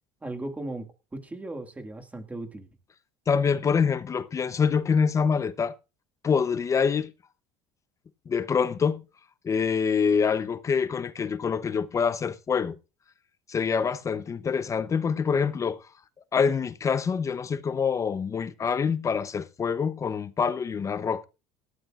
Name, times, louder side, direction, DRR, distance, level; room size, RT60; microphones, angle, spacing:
voice 1, 0.2-2.7, right 2 dB, 10° right, 2.0 m, -37 dB
voice 2, 3.3-5.7 6.2-7.1 8.3-9.0 9.4-12.8 13.5-15.8 16.3-21.2, left 6 dB, 25° left, 0.7 m, -25 dB
18.0 x 13.0 x 2.4 m
supercardioid pair, 125°, 12 cm